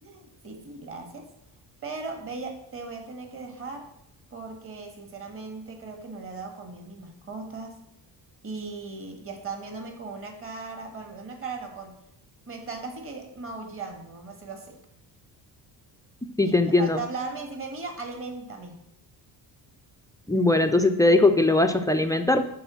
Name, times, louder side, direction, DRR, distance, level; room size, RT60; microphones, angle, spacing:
voice 1, 0.0-1.3 1.8-3.9 4.3-7.8 8.4-11.9 12.5-14.8 16.4-18.8, right 4 dB, 30° right, 3 dB, 1.7 m, -38 dB
voice 2, 16.4-17.0 20.3-22.4, left 2 dB, 10° left, 8 dB, 0.3 m, -20 dB
11.5 x 4.0 x 7.0 m, 0.78 s
cardioid pair, 160°, 41 cm